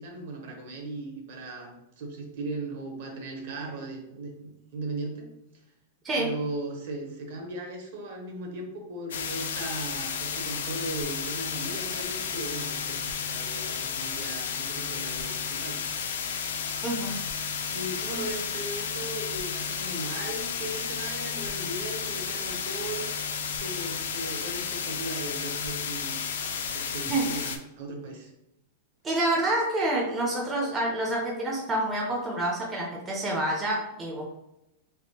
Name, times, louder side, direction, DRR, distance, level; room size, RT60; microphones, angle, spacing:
voice 1, 0.0-5.3 6.2-15.8 17.5-23.1 23.6-26.2 26.7-28.3, right 2 dB, 55° right, 3 dB, 0.8 m, -37 dB
sound 1, 9.1-27.6, left 6 dB, 85° left, 0.4 m, -32 dB
voice 2, 16.8-17.2 27.1-27.4 29.0-34.3, right 1 dB, 15° right, -2 dB, 0.4 m, -28 dB
3.4 x 2.8 x 2.8 m, 0.88 s
supercardioid pair, 175°, 0 cm